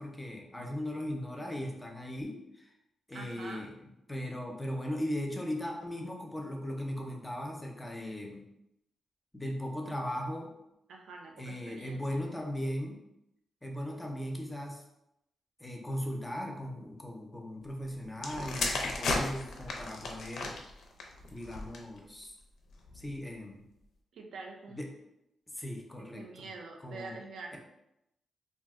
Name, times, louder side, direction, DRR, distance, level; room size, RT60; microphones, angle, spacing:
voice 1, 0.0-2.7 3.1-3.7 4.1-8.5 9.3-10.5 11.4-13.0 13.6-14.8 15.6-20.6 21.3-22.3 22.9-23.6 24.7-24.9 25.5-26.5 26.8-27.2 27.5-27.6, equal, 10° left, 1 dB, 0.4 m, -38 dB
voice 2, 3.1-3.6 10.9-12.2 24.1-24.8 26.0-27.6, right 3 dB, 90° right, 1 dB, 0.5 m, -46 dB
sound 1, 18.2-22.0 22.8-23.1, left 3 dB, 70° left, 0.4 m, -35 dB
2.5 x 2.1 x 3.5 m, 0.86 s
wide cardioid pair, 175°, 0 cm